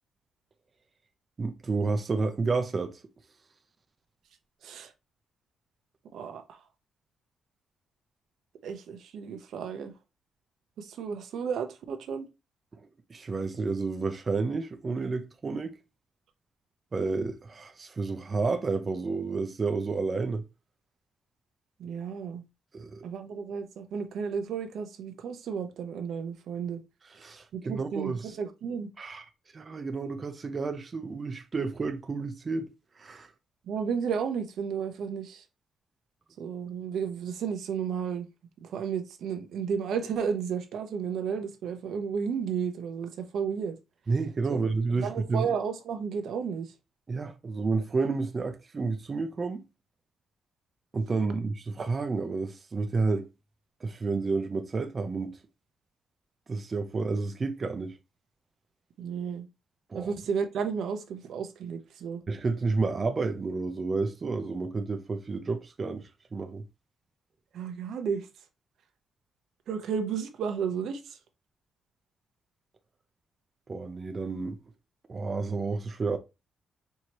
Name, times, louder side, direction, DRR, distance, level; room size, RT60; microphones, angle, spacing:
voice 1, 1.4-3.0 12.8-15.8 16.9-20.4 22.7-23.0 27.1-28.4 29.0-29.2 29.5-32.7 33.0-33.3 44.1-45.5 47.1-49.6 50.9-53.3 53.8-55.3 56.5-58.0 59.9-60.1 62.3-66.6 73.7-74.6 75.1-76.2, right 4 dB, 30° right, 0.5 m, -30 dB
voice 2, 6.1-6.6 8.6-9.9 10.8-12.3 21.8-22.5 23.0-26.8 27.5-28.9 33.7-35.4 36.4-38.3 38.6-43.8 44.5-44.6 44.9-46.7 59.0-59.5 59.9-62.2 67.5-68.3 69.7-71.2, right 6 dB, 80° right, 0.6 m, -33 dB
4.6 x 2.7 x 2.9 m
cardioid pair, 130°, 0 cm